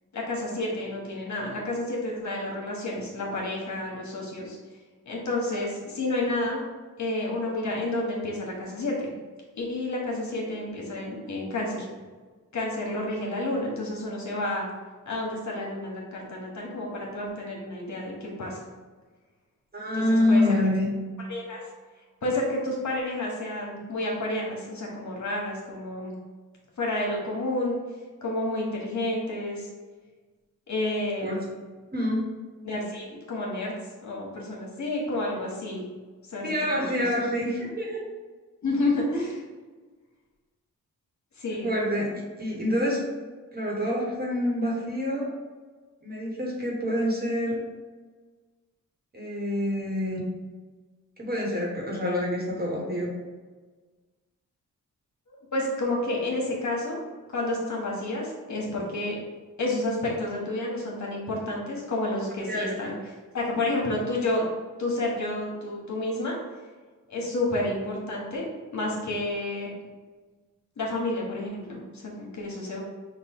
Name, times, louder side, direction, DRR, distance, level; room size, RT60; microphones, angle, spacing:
voice 1, 0.1-4.6 5.1-6.6 7.0-9.1 9.6-11.9 12.5-14.7 15.0-18.6 19.9-20.6 21.3-21.6 22.2-26.2 26.8-27.8 28.2-29.7 30.7-31.3 32.6-33.7 34.0-35.9 36.3-36.5 36.8-36.9 37.2-37.3 38.6-39.4 41.4-41.7 55.3-57.0 57.3-59.1 59.6-63.0 63.3-64.4 64.8-66.4 67.1-68.5 68.7-69.7 70.8-72.8, left 2 dB, 60° left, -2 dB, 1.3 m, -30 dB
voice 2, 19.7-20.8 31.2-31.4 31.9-32.2 36.4-38.0 41.6-43.0 43.5-45.3 46.0-47.6 49.1-50.2 51.2-53.1 62.4-62.9, left 1 dB, 30° right, -3 dB, 1.4 m, -27 dB
5.2 x 2.5 x 3.6 m, 1.4 s
cardioid pair, 70°, 33 cm